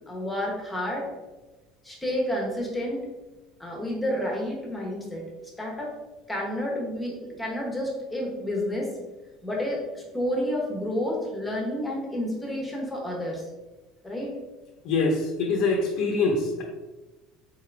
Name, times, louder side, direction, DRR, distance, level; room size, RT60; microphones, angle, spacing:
voice 1, 0.1-1.1 1.8-3.0 3.6-5.3 5.6-5.9 6.3-8.9 9.4-13.4 14.0-14.3, left 1 dB, 10° left, -2 dB, 1.0 m, -30 dB
voice 2, 14.8-16.6, left 3 dB, 60° left, 1 dB, 0.8 m, -24 dB
4.1 x 3.7 x 3.4 m, 1.1 s
cardioid pair, 155°, 0 cm